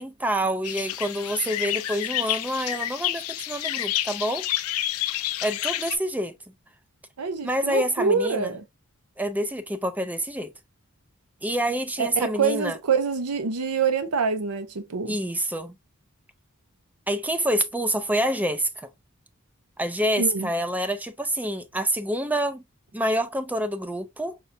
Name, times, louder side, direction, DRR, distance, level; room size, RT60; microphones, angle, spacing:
voice 1, 0.0-4.5 5.4-6.3 7.4-8.6 9.2-10.5 11.4-12.8 15.1-15.8 17.1-18.9 19.8-22.6 22.9-24.4, right 1 dB, 5° right, 0.4 m, -27 dB
sound 1, 0.6-6.0, left 13 dB, 80° left, 0.4 m, -29 dB
voice 2, 7.2-8.6 12.0-15.2 20.2-20.5, right 5 dB, 90° right, 0.6 m, -25 dB
5.2 x 2.3 x 2.6 m
head